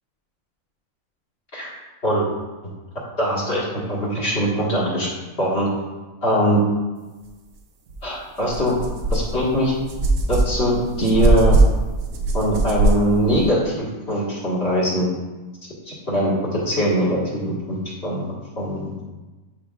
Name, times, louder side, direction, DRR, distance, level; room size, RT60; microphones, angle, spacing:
voice 1, 3.2-5.1 5.4-5.7 6.2-6.6 8.0-8.8 9.1-9.7 10.3-11.6 12.3-15.1 15.9-19.0, equal, 45° left, -6 dB, 1.9 m, -22 dB
sound 1, 7.9-8.0 8.4-13.5, right 2 dB, 70° right, 1.2 m, -21 dB
9.9 x 5.0 x 2.4 m, 1.2 s
omnidirectional pair, 1.6 m